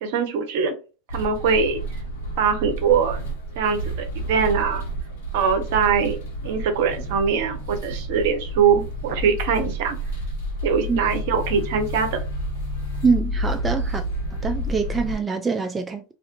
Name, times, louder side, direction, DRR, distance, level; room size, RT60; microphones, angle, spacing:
voice 1, 0.0-0.7 1.1-1.8 2.4-3.2 3.6-3.8 4.1-4.8 5.3-6.2 6.4-10.0 10.6-12.2, right 6 dB, 60° right, 0.7 m, -22 dB
sound 1, 1.1-15.2, equal, 65° left, 1.2 m, -30 dB
voice 2, 13.0-14.0 14.4-16.0, right 5 dB, 15° right, 0.3 m, -24 dB
2.5 x 2.4 x 2.4 m
hypercardioid pair, 90°, 0 cm